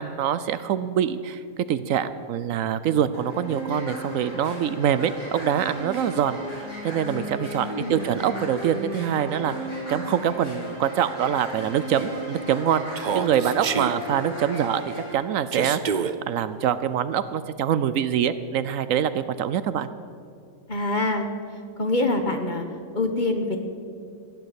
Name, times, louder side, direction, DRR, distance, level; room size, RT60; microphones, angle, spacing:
voice 1, 0.0-1.4 1.7-6.4 6.8-9.5 9.9-14.8 15.1-19.9, right 9 dB, 70° right, 13 dB, 0.9 m, -25 dB
sound 1, 3.1-15.1, equal, 55° left, 5.2 m, -35 dB
voice 2, 7.6-8.0 20.7-21.3 21.8-22.6 22.9-23.6, left 2 dB, 35° left, 5 dB, 1.2 m, -25 dB
Human voice, 12.9-13.9 15.5-16.1, right 7 dB, 55° right, 0.5 m, -27 dB
15.5 x 9.2 x 8.2 m, 2.3 s
omnidirectional pair, 1.5 m